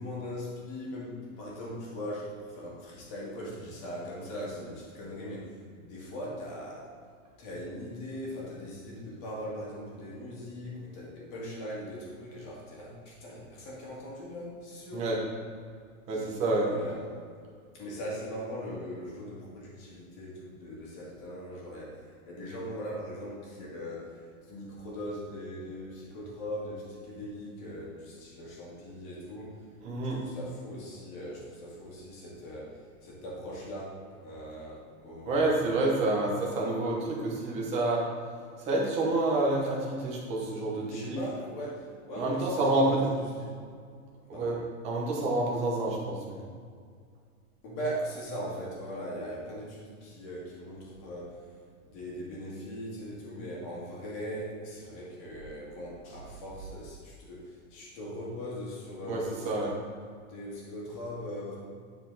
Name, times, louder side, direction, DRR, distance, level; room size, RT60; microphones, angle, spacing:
voice 1, 0.0-6.9 7.4-15.1 16.1-16.3 16.6-17.2 17.7-29.6 30.1-35.9 40.9-43.5 44.3-44.6 47.6-51.4 51.8-59.6 60.3-61.6, equal, 30° left, -4 dB, 1.9 m, -40 dB
voice 2, 16.1-16.7 29.8-30.2 35.2-38.0 38.6-41.3 42.1-43.2 44.3-46.5 59.0-59.7, right 2 dB, 15° right, -3 dB, 0.9 m, -28 dB
9.8 x 4.4 x 4.0 m, 2.1 s
supercardioid pair, 170°, 43 cm